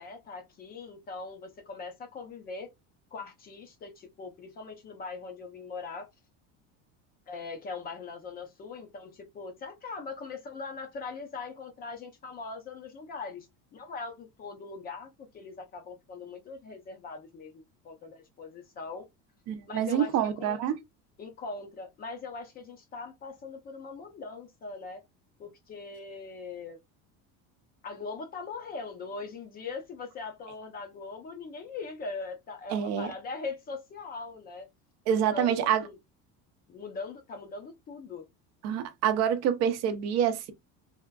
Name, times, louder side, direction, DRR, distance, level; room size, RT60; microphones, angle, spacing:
voice 1, 0.0-2.7 3.1-6.1 7.3-13.5 13.7-19.1 19.7-20.6 21.2-25.0 25.4-26.8 27.8-34.7 35.1-36.0 36.7-38.2, left 4 dB, 25° left, 0.5 m, -41 dB
voice 2, 19.5-20.8 32.7-33.1 35.1-35.8 38.6-40.5, right 9 dB, 50° right, 0.6 m, -27 dB
3.4 x 2.4 x 2.2 m
cardioid pair, 160°, 34 cm